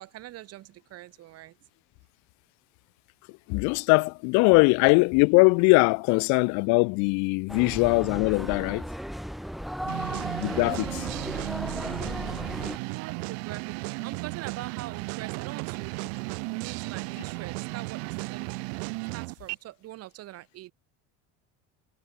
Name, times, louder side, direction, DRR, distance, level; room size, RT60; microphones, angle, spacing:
voice 1, 0.0-1.6 10.7-11.7 12.7-15.9 16.5-18.7 19.1-20.7, right 15 dB, 55° right, 7.9 m, -43 dB
voice 2, 3.5-8.9 10.4-11.1, left 31 dB, 70° left, 0.5 m, -21 dB
sound 1, 7.5-12.8, equal, ahead, 3.5 m, -35 dB
sound 2, 9.9-19.6, right 40 dB or more, 85° right, 6.8 m, -35 dB
cardioid pair, 145°, 30 cm